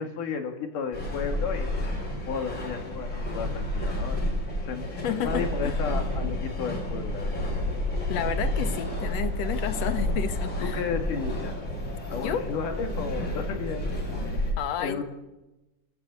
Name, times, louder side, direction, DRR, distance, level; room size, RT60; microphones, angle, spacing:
voice 1, 0.0-1.9 2.3-4.3 4.6-7.5 10.6-11.6 12.1-15.0, left 6 dB, 80° left, 5 dB, 3.7 m, -34 dB
sound 1, 0.9-14.5, left 1 dB, 35° left, 5.6 m, -30 dB
voice 2, 5.0-5.8 8.1-10.8 12.1-12.5 14.6-15.0, left 9 dB, 60° left, 10 dB, 2.2 m, -31 dB
28.5 x 13.5 x 8.3 m, 1.0 s
omnidirectional pair, 3.7 m